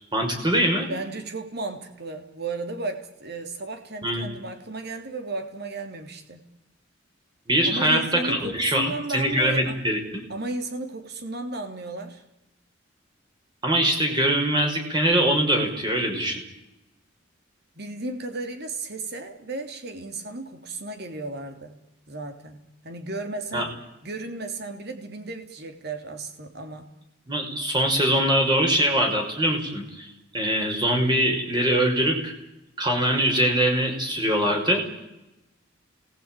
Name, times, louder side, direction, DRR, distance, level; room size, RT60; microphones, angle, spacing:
voice 1, 0.1-0.9 4.0-4.3 7.5-10.2 13.6-16.4 23.5-23.7 27.3-30.1 30.3-32.3 32.8-34.8, right 1 dB, 25° right, 3 dB, 5.6 m, -23 dB
voice 2, 0.9-6.4 7.6-9.8 10.3-12.2 17.7-21.8 22.1-23.7 24.0-26.9, right 2 dB, 55° right, 6 dB, 3.2 m, -34 dB
27.5 x 20.0 x 9.2 m, 0.94 s
head